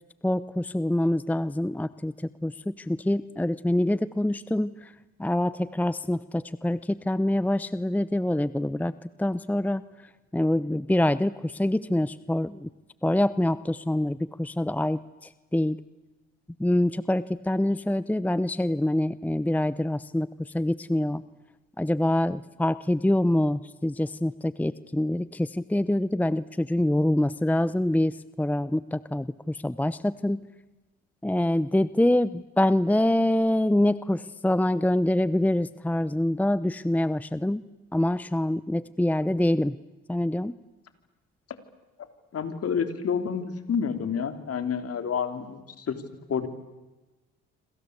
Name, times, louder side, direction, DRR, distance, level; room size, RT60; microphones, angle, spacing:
voice 1, 0.2-2.1 2.4-4.9 5.2-8.9 9.2-9.8 10.3-12.7 13.0-15.8 16.6-21.2 21.8-30.4 31.2-37.6 37.9-39.8 40.1-40.5, left 1 dB, 5° left, 17 dB, 0.8 m, -25 dB
voice 2, 42.3-46.0 46.3-46.5, left 7 dB, 50° left, 9 dB, 3.7 m, -29 dB
27.0 x 26.5 x 8.3 m, 1.1 s
supercardioid pair, 70°, 31 cm